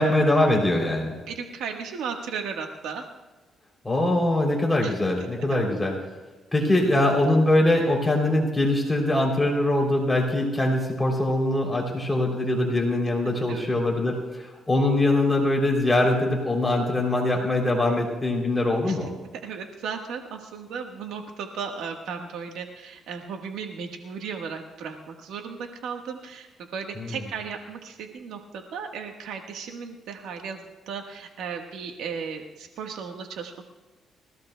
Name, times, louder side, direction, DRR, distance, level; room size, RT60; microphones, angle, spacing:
voice 1, 0.0-1.1 3.8-5.9 6.5-19.1 27.0-27.2, left 1 dB, 10° left, -1 dB, 3.1 m, -22 dB
voice 2, 1.3-3.0 4.8-4.9 5.5-5.6 13.5-13.7 18.8-19.0 19.4-26.5 26.7-33.6, right 6 dB, 85° right, 3 dB, 1.3 m, -35 dB
25.0 x 15.5 x 2.2 m, 1.3 s
cardioid pair, 90°, 0 cm